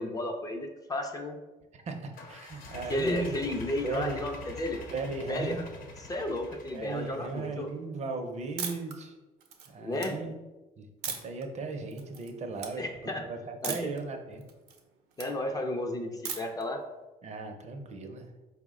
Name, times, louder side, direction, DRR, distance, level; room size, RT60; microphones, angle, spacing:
voice 1, 0.0-1.4 2.9-4.8 5.3-5.6 6.1-7.7 9.8-10.2 12.8-13.2 13.6-13.9 15.2-16.8, left 1 dB, 20° left, 3 dB, 0.4 m, -33 dB
voice 2, 1.7-3.4 3.8-4.2 4.9-5.9 6.7-9.2 9.7-10.3 10.8-12.8 13.2-14.4 17.2-18.3, right 3 dB, 40° right, 5 dB, 0.5 m, -37 dB
sound 1, 2.1-7.7, left 2 dB, 60° left, 0.8 m, -46 dB
sound 2, 8.6-8.9 9.4-10.1 11.0-11.4 11.9-12.3 12.6-12.7 13.6-14.0 14.4-15.3 16.2-16.6, right 7 dB, 80° right, 0.6 m, -37 dB
4.4 x 2.1 x 3.6 m, 1.1 s
cardioid pair, 110°, 17 cm